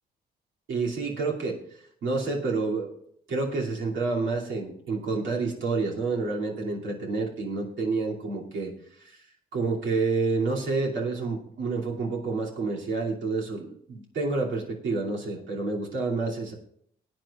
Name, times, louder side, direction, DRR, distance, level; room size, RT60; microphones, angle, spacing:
voice 1, 0.7-1.6 2.0-2.9 3.3-8.7 9.0-9.2 9.5-16.5, right 3 dB, 75° right, -3 dB, 2.8 m, -29 dB
20.5 x 9.3 x 2.5 m, 0.67 s
cardioid pair, 90°, 20 cm